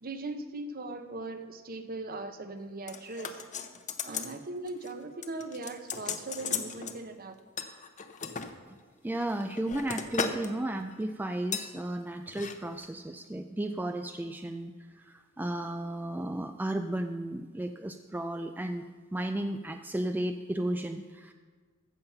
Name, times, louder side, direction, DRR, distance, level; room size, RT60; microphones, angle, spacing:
voice 1, 0.0-3.4 4.0-7.3, right 2 dB, 45° right, 8 dB, 0.9 m, -39 dB
sound 1, 2.9-4.4 4.7-4.9 5.2-7.0 7.6-8.5 9.1-10.5 10.8-11.0 11.5-11.7 12.3-12.6 12.8-12.9, left 6 dB, 35° left, 0.7 m, -36 dB
voice 2, 9.0-21.3, right 1 dB, 10° right, 7 dB, 0.3 m, -34 dB
14.5 x 7.2 x 5.8 m, 1.5 s
head